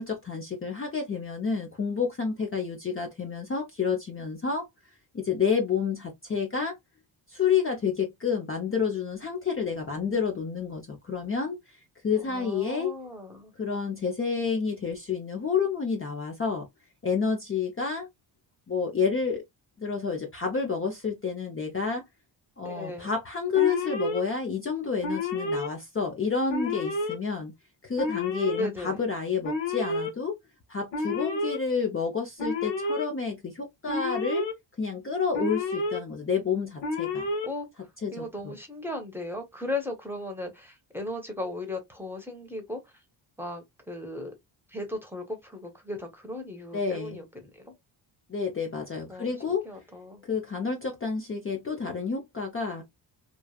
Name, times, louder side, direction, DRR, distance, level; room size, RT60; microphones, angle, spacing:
voice 1, 0.0-4.7 5.1-6.8 7.3-11.6 12.0-12.9 13.6-16.7 17.0-18.1 18.7-19.4 19.8-22.0 22.6-27.5 27.8-30.3 30.7-34.4 34.8-37.3 38.0-38.5 46.7-47.2 48.3-49.7 50.3-52.8, left 5 dB, 25° left, 0.7 m, -29 dB
voice 2, 12.2-13.5 22.6-23.1 28.6-29.0 37.4-43.0 43.4-44.3 44.7-47.7 49.1-50.2, left 1 dB, 5° right, 1.0 m, -37 dB
Alarm, 23.5-24.2 25.0-25.7 26.5-27.2 28.0-28.6 29.4-30.1 30.9-31.6 32.4-33.0 33.9-34.5 35.3-36.0 36.8-37.5, left 2 dB, 65° left, 1.2 m, -30 dB
3.1 x 2.4 x 2.3 m
cardioid pair, 85°, 47 cm